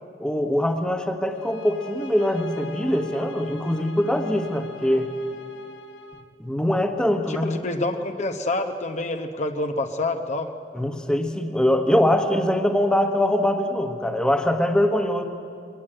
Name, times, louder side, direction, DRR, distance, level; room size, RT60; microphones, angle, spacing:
voice 1, 0.2-5.1 6.4-7.6 10.7-15.2, left 1 dB, 5° left, 5 dB, 1.3 m, -23 dB
sound 1, 1.3-6.3, left 2 dB, 85° left, 1.4 m, -43 dB
voice 2, 7.3-10.5, left 2 dB, 40° left, 5 dB, 0.9 m, -27 dB
23.0 x 17.5 x 8.9 m, 2.5 s
head